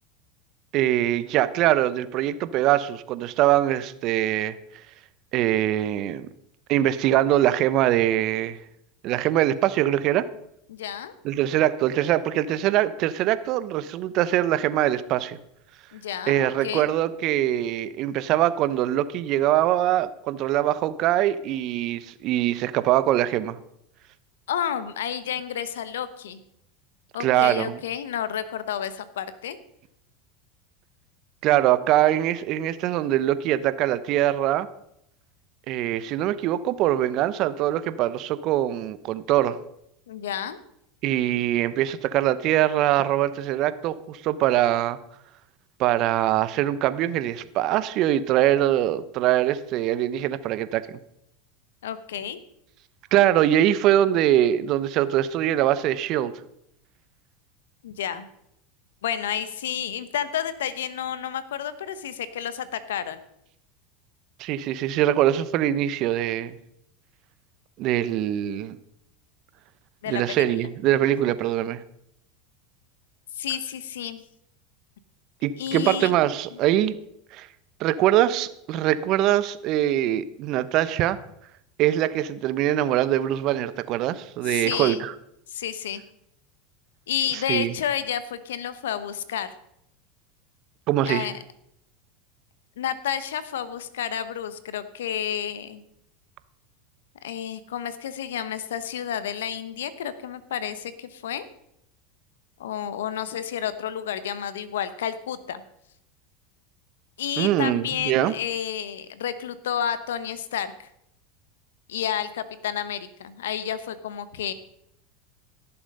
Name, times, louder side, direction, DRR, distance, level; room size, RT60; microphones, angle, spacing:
voice 1, 0.7-4.6 5.3-6.3 6.7-8.6 9.0-10.3 11.2-15.4 16.3-23.6 27.2-27.8 31.4-34.7 35.7-39.6 41.0-45.0 45.8-51.0 53.1-56.3 64.4-66.6 67.8-68.8 70.1-71.8 75.4-77.0 77.3-77.5 77.8-81.2 81.8-85.1 87.5-87.7 90.9-91.3 107.4-108.3, right 13 dB, 55° right, 15 dB, 0.8 m, -23 dB
voice 2, 10.7-11.1 15.9-16.9 24.5-26.4 27.1-29.6 40.1-40.6 51.8-52.4 57.8-58.3 59.0-63.2 70.0-70.4 71.1-71.3 73.3-74.2 75.6-76.1 76.5-76.6 84.4-85.0 85.5-86.0 87.1-89.5 91.1-91.4 92.8-95.8 97.2-101.5 102.6-105.6 107.2-110.9 111.9-114.5, left 9 dB, 80° left, 14 dB, 1.0 m, -30 dB
16.5 x 7.1 x 5.4 m, 0.76 s
hypercardioid pair, 95°, 0 cm